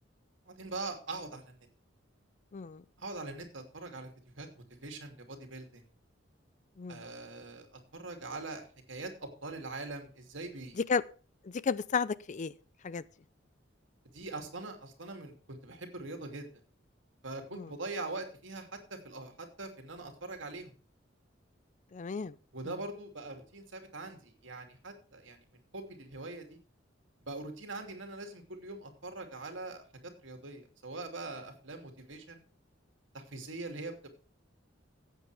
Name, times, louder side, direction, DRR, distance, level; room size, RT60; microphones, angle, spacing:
voice 1, 0.5-1.6 3.0-5.8 6.9-10.8 14.1-16.5 17.2-20.7 22.5-25.4 25.7-26.6 27.2-32.4 33.1-34.1, right 2 dB, 70° right, 2.8 m, -42 dB
voice 2, 2.5-2.8 6.8-7.0 10.8-11.0 11.4-12.5 12.8-13.0 17.5-17.7 21.9-22.3 22.7-22.8, left 5 dB, 40° left, 0.4 m, -33 dB
15.5 x 8.4 x 3.5 m
head